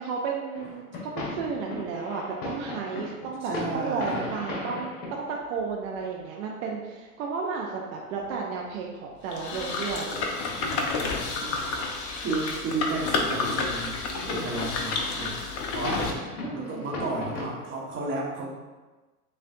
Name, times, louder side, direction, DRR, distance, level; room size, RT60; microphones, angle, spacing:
voice 1, 0.0-10.3 16.4-16.9, right 5 dB, 60° right, -1 dB, 0.7 m, -33 dB
sound 1, 0.5-5.2 5.5-5.6 6.6-7.0 7.5-8.4 8.7-8.8 9.1-9.2 9.4-9.5 9.7-10.3 10.5-13.4 13.8-14.3 14.6-17.4, left 2 dB, 50° left, 1.3 m, -38 dB
voice 2, 3.4-4.2 10.6-11.6 12.2-15.4 15.7-16.1 16.5-18.5, right 2 dB, 25° right, -3 dB, 1.2 m, -33 dB
sound 2, 9.3-16.1, left 4 dB, 35° left, 0.6 m, -30 dB
6.6 x 2.5 x 2.6 m, 1.2 s
hypercardioid pair, 105°, 46 cm